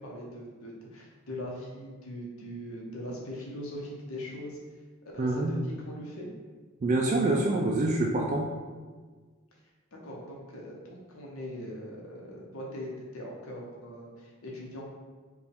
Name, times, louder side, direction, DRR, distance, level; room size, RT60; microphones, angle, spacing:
voice 1, 0.0-4.6 5.1-6.3 9.9-14.8, equal, 85° left, -2 dB, 0.9 m, -41 dB
voice 2, 5.2-5.5 6.8-8.5, right 2 dB, 35° right, -1 dB, 0.3 m, -26 dB
4.6 x 2.4 x 3.5 m, 1.4 s
head